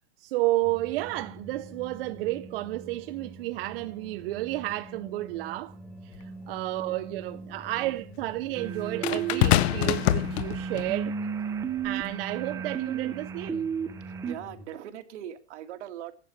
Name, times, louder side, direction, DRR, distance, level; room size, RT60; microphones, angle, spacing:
voice 1, 0.2-5.8 6.0-11.2 11.8-13.7, right 17 dB, 50° right, 0.6 m, -31 dB
sound 1, 0.6-14.7, right 1 dB, 10° left, 2.1 m, -47 dB
sound 2, 6.1-6.2 9.0-10.9 11.8-12.1, left 14 dB, 60° left, 0.8 m, -25 dB
sound 3, 8.5-14.4, right 7 dB, 10° right, 0.6 m, -33 dB
voice 2, 14.2-16.1, right 10 dB, 70° right, 1.8 m, -40 dB
11.0 x 7.0 x 9.1 m
supercardioid pair, 160°, 36 cm